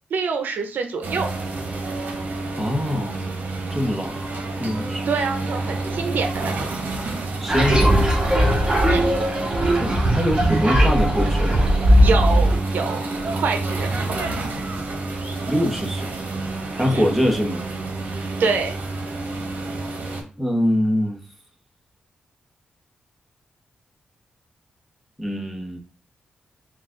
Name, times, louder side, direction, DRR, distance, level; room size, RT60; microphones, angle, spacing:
voice 1, 0.1-1.3 5.1-6.7 8.9-9.1 12.0-13.0 13.3-14.2 16.9-17.0 18.1-18.7, right 5 dB, 80° right, 5 dB, 0.6 m, -26 dB
sound 1, 1.0-20.2, right 3 dB, 60° right, 1.1 m, -29 dB
voice 2, 2.5-3.3 3.7-4.2 4.6-5.1 7.4-8.0 9.8-11.7 15.5-16.1 16.7-17.6 20.4-21.2 25.2-25.8, equal, ahead, 1 dB, 1.0 m, -23 dB
sound 2, 7.5-12.6, equal, 25° right, 1.2 m, -18 dB
3.9 x 2.4 x 3.8 m, 0.38 s
cardioid pair, 85°, 3 cm